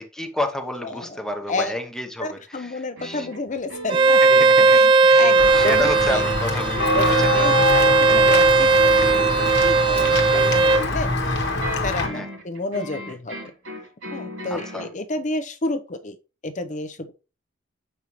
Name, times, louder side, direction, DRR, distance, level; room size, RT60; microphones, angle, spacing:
voice 1, 0.0-3.3 4.1-8.4 12.1-12.3 14.5-14.9, left 1 dB, 5° left, 0.8 m, -31 dB
voice 2, 0.8-1.8 2.2-4.9 5.1-6.3 6.9-11.1 11.8-13.5 14.1-16.2 16.4-17.1, left 2 dB, 35° left, 0.7 m, -31 dB
sound 1, 3.0-14.9, equal, 70° right, 3.1 m, -37 dB
Bowed string instrument, 3.9-10.8, right 4 dB, 25° right, 0.4 m, -17 dB
Walk footsteps / Bell, 5.4-12.1, left 2 dB, 55° left, 1.3 m, -24 dB
7.2 x 5.4 x 3.1 m
head